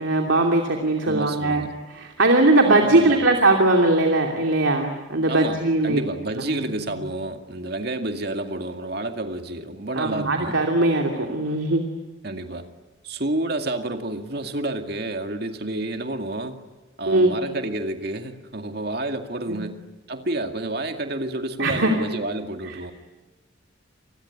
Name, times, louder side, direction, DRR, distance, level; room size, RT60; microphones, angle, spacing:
voice 1, 0.0-1.6 1.9-6.0 10.0-11.8 17.1-17.4 19.5-19.6 21.6-21.9, right 2 dB, 90° right, 2 dB, 2.9 m, -20 dB
voice 2, 1.0-1.7 2.8-3.3 5.3-10.7 12.2-12.7 13.0-16.6 17.0-19.8 20.1-22.9, right 2 dB, 55° right, 6 dB, 2.2 m, -29 dB
28.0 x 20.5 x 9.9 m, 1.2 s
head